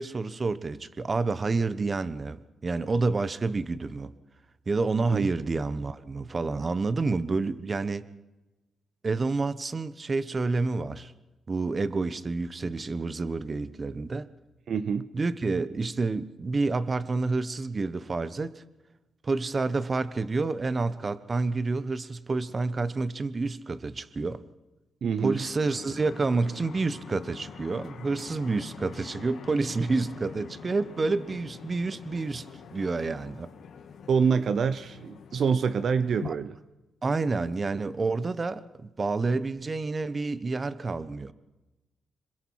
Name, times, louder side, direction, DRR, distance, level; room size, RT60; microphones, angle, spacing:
voice 1, 0.0-4.1 4.7-8.1 9.0-11.1 11.5-14.3 15.1-18.6 19.2-24.4 25.2-33.5 36.2-36.3 37.0-41.3, right 3 dB, 35° right, 1.1 m, -29 dB
voice 2, 14.7-15.1 25.0-25.4 34.1-36.5, right 6 dB, 65° right, 0.8 m, -26 dB
sound 1, 25.2-36.3, left 7 dB, 75° left, 2.5 m, -45 dB
26.5 x 22.0 x 4.8 m
cardioid pair, 80°, 0 cm